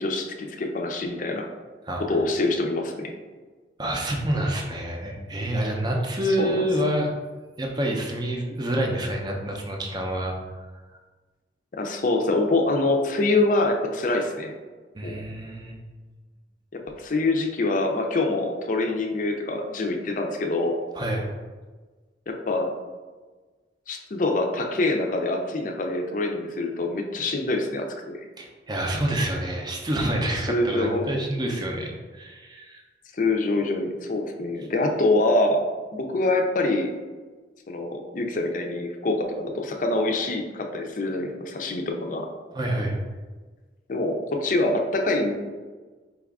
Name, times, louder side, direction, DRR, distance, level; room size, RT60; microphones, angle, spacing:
voice 1, 0.0-1.5 2.1-3.1 6.2-6.6 11.7-14.5 15.0-15.2 16.7-20.8 22.3-22.7 23.9-28.3 30.5-31.1 33.1-35.6 35.9-36.9 37.7-42.3 43.9-45.3, left 2 dB, 45° left, 3 dB, 0.5 m, -25 dB
voice 2, 3.8-7.1 7.6-10.3 14.9-15.7 21.0-21.3 28.4-32.8 42.5-43.0, right 1 dB, 25° right, 0 dB, 0.5 m, -27 dB
4.6 x 2.4 x 3.5 m, 1.3 s
head